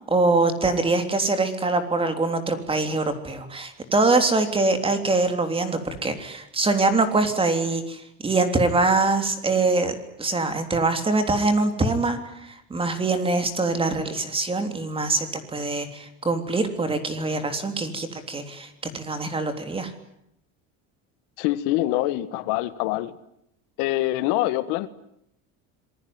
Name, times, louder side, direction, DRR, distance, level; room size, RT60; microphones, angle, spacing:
voice 1, 0.1-18.7 18.9-19.9, right 3 dB, 15° right, 3.4 m, -24 dB
voice 2, 21.4-23.1 23.8-24.9, left 16 dB, 75° left, 1.8 m, -24 dB
26.5 x 21.5 x 9.7 m
cardioid pair, 150°, 34 cm